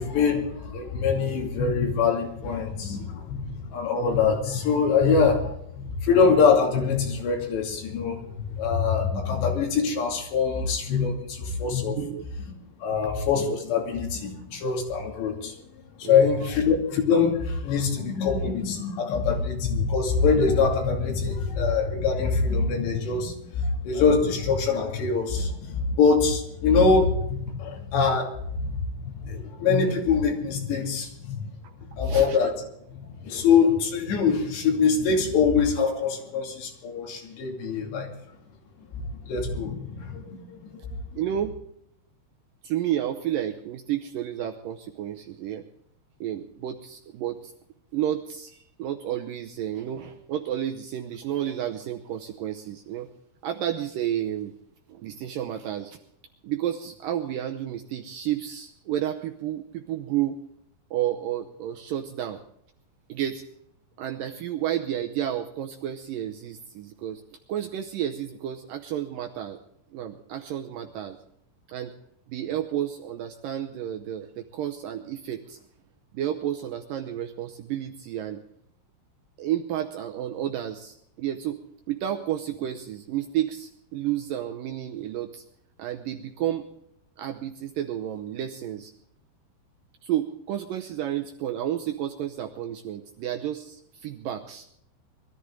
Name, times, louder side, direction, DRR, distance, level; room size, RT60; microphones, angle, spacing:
voice 1, 0.0-12.0 12.8-31.5 31.8-32.6 32.9-38.2 38.9-41.0, left 5 dB, 90° left, 1 dB, 4.8 m, -24 dB
voice 2, 12.0-12.3 16.0-16.3 31.6-31.7 32.0-32.5 41.2-41.5 42.6-45.6 46.2-47.5 47.9-53.1 53.4-54.5 54.9-56.0 56.4-60.4 60.9-62.4 63.1-63.4 64.0-67.2 67.5-69.6 69.9-71.2 71.7-72.0 72.3-75.6 76.1-78.4 79.4-81.6 81.9-85.4 85.8-86.7 87.2-88.9 90.0-94.7, right 11 dB, 75° right, 5 dB, 2.0 m, -31 dB
22.0 x 13.5 x 3.8 m, 0.72 s
omnidirectional pair, 4.8 m